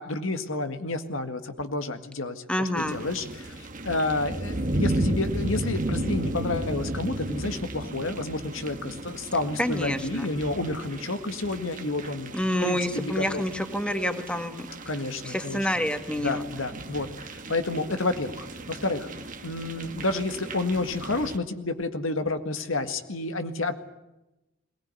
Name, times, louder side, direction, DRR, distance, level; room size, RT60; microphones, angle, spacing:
voice 1, 0.0-12.3 12.6-13.4 14.9-15.6 16.2-19.1 19.4-23.7, left 2 dB, 85° left, 8 dB, 1.9 m, -30 dB
voice 2, 2.5-3.0 9.6-10.3 12.3-14.7 15.2-16.5, left 1 dB, 5° left, 7 dB, 1.9 m, -28 dB
sound 1, 2.8-21.4, right 1 dB, 40° right, 1.6 m, -34 dB
22.0 x 19.0 x 9.7 m, 0.97 s
head